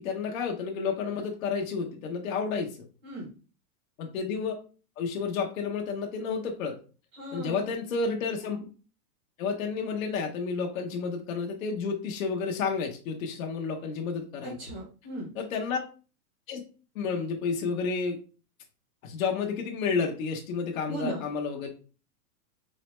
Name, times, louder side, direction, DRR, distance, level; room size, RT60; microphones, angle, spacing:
voice 1, 0.0-2.8 4.0-4.5 5.0-6.8 7.3-8.7 9.4-14.6 15.3-15.8 16.5-16.6 16.9-18.2 19.0-21.7, left 5 dB, 60° left, 1 dB, 0.8 m, -31 dB
voice 2, 7.1-7.7 14.4-15.3 20.9-21.2, right 1 dB, 15° right, -2 dB, 0.6 m, -37 dB
4.0 x 2.1 x 3.0 m, 0.36 s
supercardioid pair, 175°, 45 cm